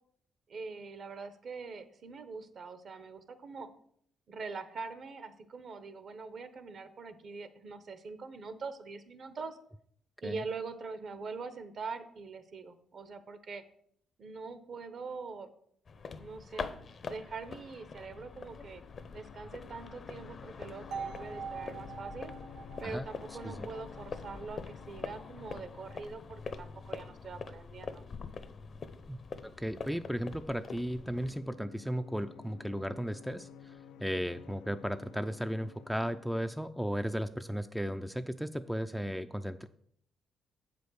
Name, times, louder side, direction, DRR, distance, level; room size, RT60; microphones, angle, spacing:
voice 1, 0.5-3.7 4.3-9.6 10.2-13.6 14.2-15.5 16.2-16.7 17.1-18.8 19.1-22.3 22.8-28.0, right 4 dB, 55° right, 11 dB, 1.0 m, -43 dB
sound 1, 15.9-31.4, left 5 dB, 45° left, 0.7 m, -44 dB
sound 2, 17.5-36.7, left 9 dB, 90° left, 0.3 m, -55 dB
sound 3, 20.9-24.9, right 6 dB, 85° right, 0.8 m, -44 dB
voice 2, 29.6-33.7 34.0-39.7, equal, ahead, 9 dB, 0.4 m, -35 dB
7.5 x 5.2 x 6.3 m, 0.67 s
cardioid pair, 90°, 0 cm